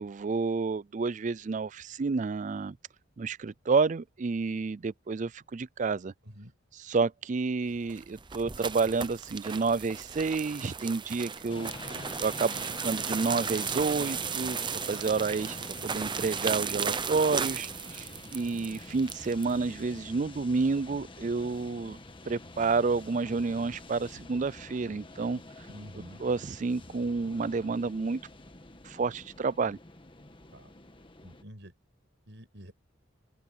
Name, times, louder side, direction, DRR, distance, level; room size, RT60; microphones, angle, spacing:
voice 1, 0.0-2.8 3.2-6.1 6.8-11.7 12.2-14.6 14.8-22.0 22.3-25.4 26.2-28.2 28.8-29.8, right 4 dB, 40° right, 0.4 m, -30 dB
sound 1, 7.8-19.5, right 6 dB, 25° right, 0.8 m, -35 dB
sound 2, 11.5-31.4, left 2 dB, 25° left, 1.5 m, -47 dB
voice 2, 25.7-26.2 30.5-30.7 31.2-31.7 32.3-32.7, equal, 70° right, 6.0 m, -48 dB
open air
head